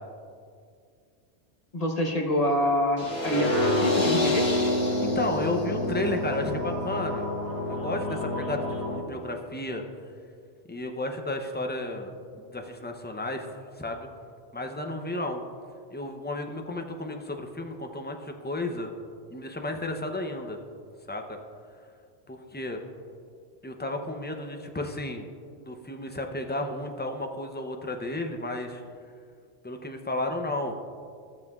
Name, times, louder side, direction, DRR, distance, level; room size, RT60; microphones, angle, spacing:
voice 1, 1.7-4.5, equal, 35° left, 2 dB, 1.0 m, -26 dB
sound 1, 3.0-9.0, left 1 dB, 60° left, 2.0 m, -27 dB
voice 2, 5.0-7.3 7.7-9.8 10.7-13.5 13.7-14.1 14.5-15.4 15.9-18.9 19.3-20.6 21.1-21.4 22.3-22.8 23.6-28.8 29.6-30.7, left 1 dB, 15° left, 4 dB, 0.4 m, -33 dB
16.0 x 7.1 x 2.4 m, 2.2 s
omnidirectional pair, 1.2 m